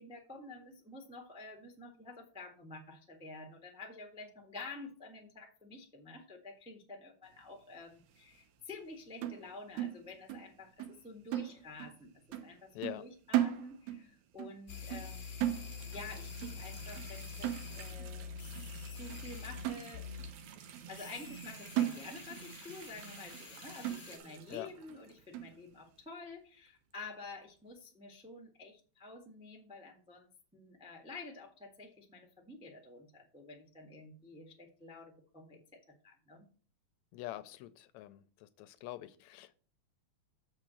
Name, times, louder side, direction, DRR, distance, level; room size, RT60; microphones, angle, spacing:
voice 1, 0.0-12.7 13.0-15.3 15.9-18.3 18.9-20.1 20.9-36.5, left 3 dB, 5° right, 1 dB, 0.5 m, -50 dB
sound 1, 9.2-10.5 10.8-11.0 11.3-12.0 12.3-12.6 12.8-14.1 14.4-14.6 14.9-16.1 16.4-16.7 17.0-17.1 17.4-18.1 18.6-18.7 19.1-19.2 19.6-20.3 20.7-20.8 21.3-21.4 21.8-22.5 22.8-22.9 23.3-23.5 23.8-24.4 24.9-25.0 25.3-25.6, right 13 dB, 80° right, 2.2 m, -36 dB
voice 2, 12.7-13.0 24.5-24.7 37.1-39.7, left 15 dB, 80° left, 13 dB, 1.8 m, -45 dB
sound 2, 14.7-19.7 19.9-20.3 20.9-24.2, left 5 dB, 50° left, 0.7 m, -46 dB
sound 3, 15.7-25.7 26.3-26.4 26.7-26.8 27.8-27.9, right 7 dB, 65° right, 1.7 m, -53 dB
7.3 x 4.8 x 6.2 m, 0.39 s
omnidirectional pair, 3.3 m